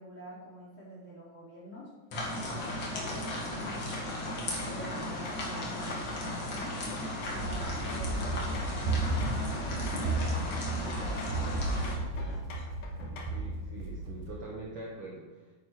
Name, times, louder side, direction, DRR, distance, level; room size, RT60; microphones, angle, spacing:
voice 1, 0.0-1.9 2.4-6.8 7.2-12.4, equal, 15° left, -8 dB, 4.5 m, -47 dB
sizzling cooking on stove, 2.1-11.9, left 1 dB, 45° left, 1.8 m, -36 dB
sound 1, 2.9-13.5, left 3 dB, 60° left, 2.1 m, -46 dB
Run, 7.3-14.4, right 2 dB, 80° right, 3.5 m, -34 dB
voice 2, 13.3-15.4, right 2 dB, 60° right, -4 dB, 1.4 m, -43 dB
9.8 x 9.2 x 5.1 m, 1.1 s
omnidirectional pair, 5.2 m